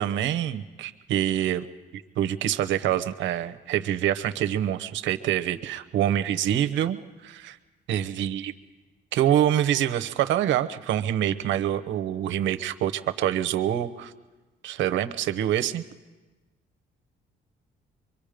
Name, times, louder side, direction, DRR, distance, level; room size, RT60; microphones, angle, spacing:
voice 1, 0.0-1.7 1.9-7.6 7.9-8.5 9.1-14.1 14.6-15.8, right 11 dB, 90° right, 9 dB, 0.9 m, -26 dB
24.0 x 23.5 x 5.1 m, 1.2 s
cardioid pair, 120°, 19 cm